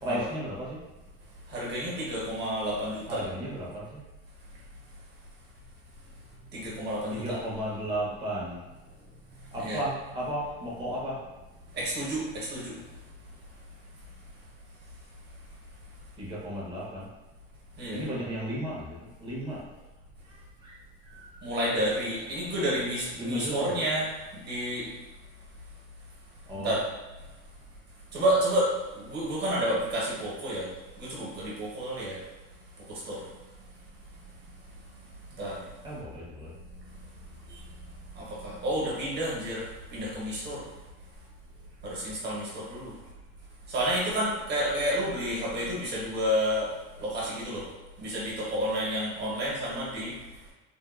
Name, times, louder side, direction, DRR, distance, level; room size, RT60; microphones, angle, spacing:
voice 1, 0.0-0.8 3.1-4.0 6.6-6.7 7.1-8.6 9.0-9.1 9.5-11.3 16.2-17.1 17.9-19.6 20.2-20.8 21.0-21.4 23.2-23.8 26.5-26.7 35.8-36.5, equal, 15° right, -6 dB, 1.1 m, -34 dB
voice 2, 1.5-3.3 6.5-7.4 9.6-9.8 11.7-12.7 17.8-18.0 21.4-24.9 26.5-26.8 28.1-30.7 31.0-32.2 32.9-33.2 35.4-35.6 37.5-37.6 38.1-39.6 39.9-40.6 41.8-42.9 43.7-46.7 47.0-47.6 48.0-50.1, equal, 35° right, -6 dB, 1.4 m, -30 dB
3.6 x 2.6 x 2.5 m, 1.1 s
supercardioid pair, 140°, 30 cm